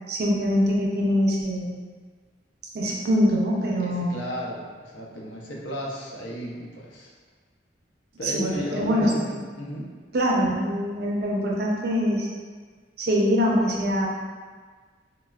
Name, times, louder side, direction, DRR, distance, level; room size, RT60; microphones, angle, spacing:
voice 1, 0.1-1.7 2.7-4.2 8.2-9.1 10.1-12.3 13.0-14.1, equal, 55° right, -2 dB, 0.5 m, -23 dB
voice 2, 3.8-7.1 8.2-9.9, equal, 85° left, -3 dB, 0.6 m, -34 dB
4.0 x 2.0 x 2.3 m, 1.5 s
head